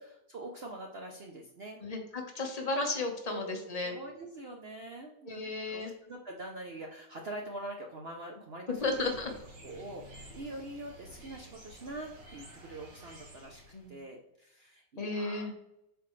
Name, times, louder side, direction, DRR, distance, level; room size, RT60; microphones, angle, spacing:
voice 1, 0.0-1.8 3.3-9.1 9.6-13.6 13.9-15.6, right 2 dB, 55° right, 2 dB, 0.7 m, -44 dB
voice 2, 1.8-3.9 5.3-5.9 8.8-9.3 13.7-14.0 15.0-15.5, left 2 dB, 25° left, 3 dB, 1.1 m, -34 dB
sound 1, 8.7-14.0, equal, 75° right, 2.4 m, -52 dB
7.9 x 5.1 x 3.3 m, 0.85 s
omnidirectional pair, 1.9 m